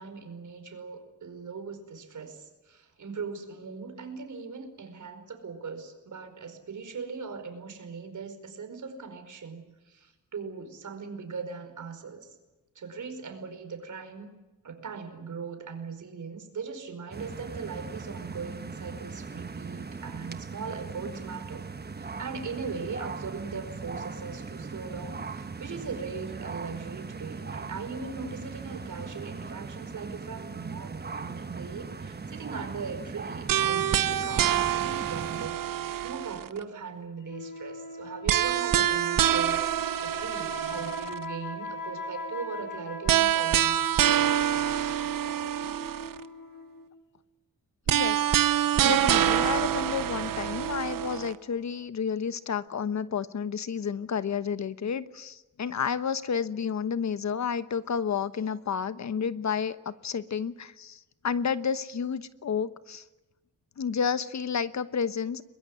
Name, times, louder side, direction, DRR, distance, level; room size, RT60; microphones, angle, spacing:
voice 1, 0.0-12.4 12.7-14.3 14.6-21.7 22.0-43.8, right 5 dB, 65° right, 7 dB, 5.0 m, -39 dB
sound 1, 17.1-35.5, right 4 dB, 30° right, 1.3 m, -39 dB
sound 2, 33.5-36.6 38.3-41.2 43.1-46.2 47.9-51.3, right 11 dB, 85° right, 1.0 m, -26 dB
sound 3, 37.2-46.9, left 2 dB, 80° left, 5.2 m, -40 dB
voice 2, 47.9-48.3 48.8-63.0 63.8-65.4, left 7 dB, 55° left, 13 dB, 1.1 m, -31 dB
22.0 x 21.5 x 9.6 m, 1.1 s
cardioid pair, 75°, 32 cm